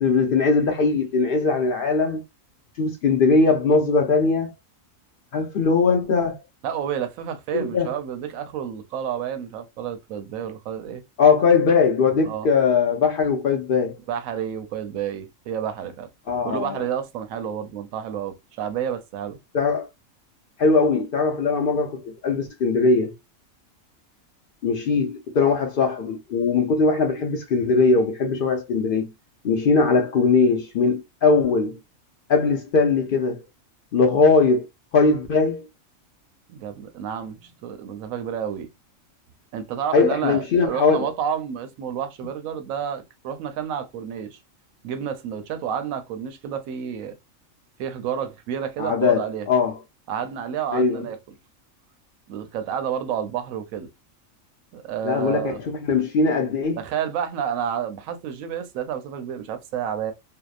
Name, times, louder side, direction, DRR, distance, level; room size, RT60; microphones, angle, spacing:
voice 1, 0.0-2.2 2.8-4.5 5.3-6.4 7.5-7.9 11.2-14.0 16.3-16.8 19.5-19.9 20.6-23.1 24.6-29.1 29.4-31.8 32.3-33.4 33.9-34.7 34.9-35.7 39.9-41.1 48.8-49.8 50.7-51.0 55.0-56.8, left 4 dB, 65° left, 0.5 m, -20 dB
voice 2, 6.6-11.0 12.2-12.5 14.1-16.1 16.4-19.4 36.5-38.7 39.5-44.4 44.8-47.2 47.8-49.5 50.1-51.2 52.3-53.9 54.7-55.6 56.8-60.1, right 8 dB, 80° right, 1.0 m, -30 dB
2.7 x 2.0 x 2.3 m
omnidirectional pair, 1.4 m